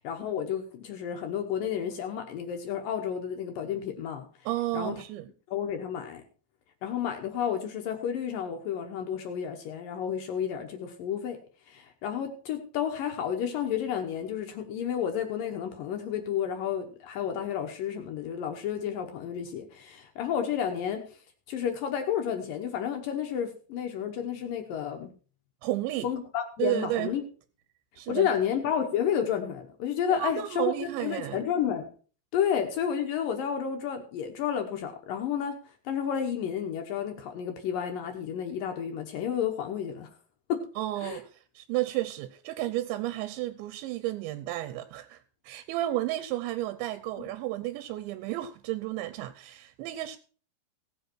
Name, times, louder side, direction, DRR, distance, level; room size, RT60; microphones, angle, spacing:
voice 1, 0.0-4.3 4.7-5.0 5.5-6.2 6.8-11.4 11.7-21.2 21.5-25.1 26.0-27.2 28.1-31.9 32.3-35.6 35.9-40.1 40.5-40.7 41.0-41.2, left 8 dB, 70° left, 2.3 m, -31 dB
voice 2, 4.5-5.3 25.6-26.1 26.6-27.1 28.0-28.3 30.1-31.4 40.8-50.2, right 15 dB, 85° right, 3.0 m, -32 dB
17.0 x 7.8 x 4.5 m
omnidirectional pair, 5.2 m